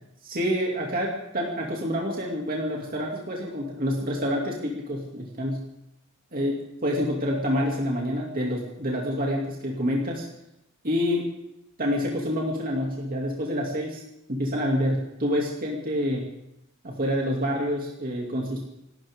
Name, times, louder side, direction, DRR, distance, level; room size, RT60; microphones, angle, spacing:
voice 1, 0.3-5.6 6.3-10.2 10.8-11.3 11.8-14.0 14.3-16.3 16.8-18.6, equal, 40° right, -2 dB, 2.6 m, -27 dB
28.0 x 12.5 x 3.7 m, 0.85 s
head